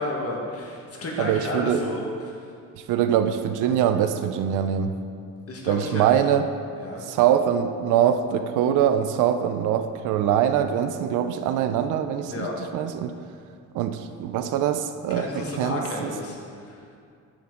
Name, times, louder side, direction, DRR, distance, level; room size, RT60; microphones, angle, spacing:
voice 1, 0.0-2.5 5.5-6.0 6.8-7.1 12.3-12.6 15.1-16.9, left 2 dB, 50° left, -1 dB, 1.7 m, -32 dB
voice 2, 1.2-1.8 2.7-4.9 5.7-6.5 7.1-12.5 12.7-13.1 13.7-16.1, right 9 dB, 90° right, 9 dB, 0.5 m, -23 dB
9.4 x 6.2 x 3.7 m, 2.3 s
cardioid pair, 90°, 30 cm